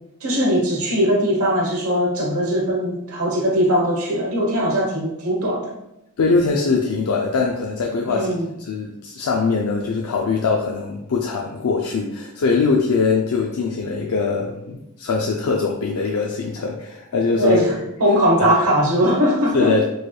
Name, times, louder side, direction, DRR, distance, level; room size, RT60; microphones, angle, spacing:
voice 1, 0.2-5.7 8.1-8.5 17.4-19.7, equal, 80° right, -2 dB, 0.9 m, -20 dB
voice 2, 6.2-8.3 8.6-17.6 19.5-19.8, left 4 dB, 85° left, 0 dB, 0.4 m, -22 dB
4.6 x 3.1 x 2.2 m, 0.87 s
head